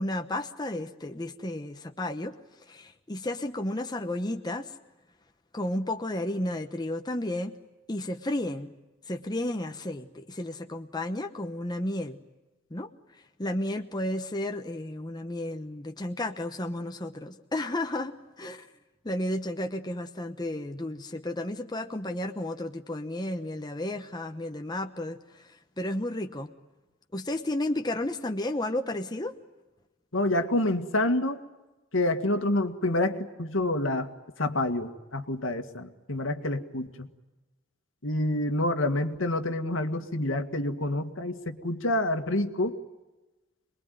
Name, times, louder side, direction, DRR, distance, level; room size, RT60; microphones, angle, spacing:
voice 1, 0.0-2.3 2.7-4.7 5.5-7.5 7.9-8.7 9.1-12.2 12.7-12.9 13.4-18.7 19.0-25.5 25.8-26.5 27.1-29.3, left 1 dB, 20° left, 5 dB, 1.0 m, -32 dB
voice 2, 30.1-31.4 31.9-34.1 34.4-37.1 38.0-42.7, left 1 dB, 75° left, 7 dB, 1.9 m, -28 dB
26.5 x 21.5 x 9.4 m, 1.1 s
head